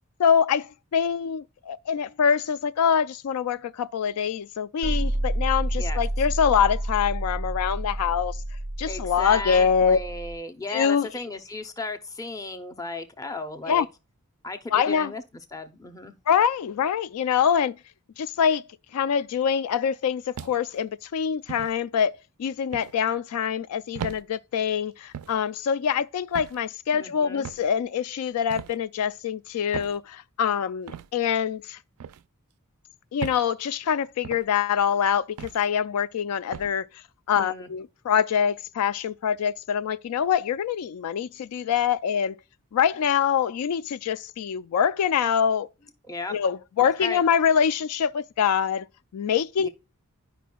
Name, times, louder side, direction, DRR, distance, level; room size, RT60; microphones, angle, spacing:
voice 1, 0.2-8.4 8.8-10.0 10.7-11.1 13.7-13.9 14.7-15.1 16.3-17.8 18.2-18.6 18.9-31.8 33.1-36.9 37.3-42.4 42.7-45.7 46.3-48.9 49.1-49.7, left 7 dB, 80° left, 0.3 m, -24 dB
sound 1, 4.8-10.4, right 1 dB, 25° right, 0.4 m, -29 dB
voice 2, 8.8-13.9 14.4-15.2 15.5-16.2 26.9-27.5 37.3-37.7 46.1-46.4 46.8-47.2 49.6-49.7, left 2 dB, 15° left, 0.6 m, -35 dB
sound 2, 20.3-20.8 21.5-21.7 22.7-23.0 23.9-24.2 25.1-25.4 26.3-26.6 27.4-27.7 28.5-28.8 29.7-30.0 30.9-31.1 32.0-32.2 33.2-33.5 34.2-34.5 35.4-35.6 36.5-36.7, right 8 dB, 85° right, 0.4 m, -37 dB
11.0 x 5.1 x 2.3 m
head